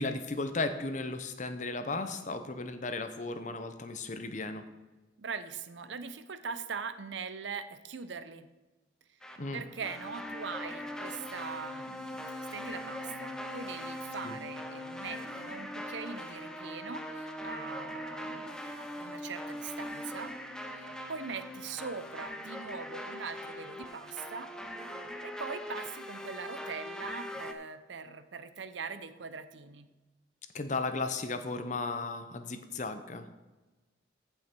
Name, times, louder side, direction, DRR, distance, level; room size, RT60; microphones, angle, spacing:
voice 1, 0.0-4.6 9.4-9.6 14.2-14.4 30.5-33.3, left 3 dB, 40° left, 9 dB, 0.8 m, -35 dB
voice 2, 5.2-8.5 9.5-20.3 20.7-24.5 25.2-29.9, right 5 dB, 75° right, 11 dB, 0.7 m, -42 dB
sound 1, 9.2-27.5, left 1 dB, 5° left, 0.6 m, -41 dB
15.0 x 5.6 x 4.5 m, 1.2 s
head